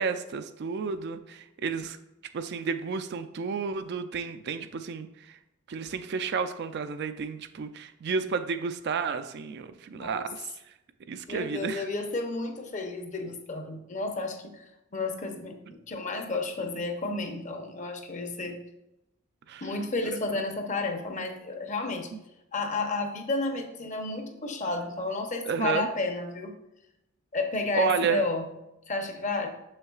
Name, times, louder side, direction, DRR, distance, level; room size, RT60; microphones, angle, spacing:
voice 1, 0.0-2.0 2.3-5.4 5.7-10.7 11.1-11.9 19.5-19.7 22.1-22.2 25.4-25.9 27.7-28.2, right 5 dB, 50° right, 9 dB, 0.4 m, -31 dB
voice 2, 9.9-10.3 11.3-14.6 14.9-15.6 15.9-18.6 19.6-22.1 22.5-26.5 27.3-28.5 28.9-29.5, left 3 dB, 35° left, 5 dB, 0.7 m, -31 dB
6.5 x 6.3 x 2.4 m, 0.90 s
head